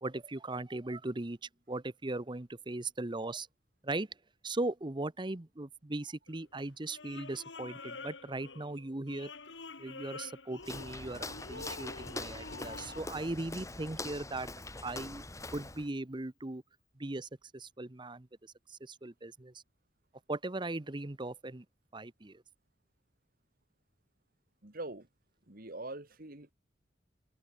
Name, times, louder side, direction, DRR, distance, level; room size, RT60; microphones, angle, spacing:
voice 1, 0.0-1.4 1.7-3.5 3.8-4.1 4.4-9.3 9.8-14.5 14.8-15.2 15.5-16.6 17.0-18.3 18.7-19.5 20.3-21.6 21.9-22.4, right 2 dB, 25° right, 0.9 m, -38 dB
sound 1, 6.3-13.0, left 3 dB, 80° left, 2.9 m, -47 dB
Walk footsteps, 10.6-15.9, left 2 dB, 15° left, 1.9 m, -43 dB
voice 2, 24.6-25.1 25.5-26.5, right 2 dB, 50° right, 2.5 m, -43 dB
head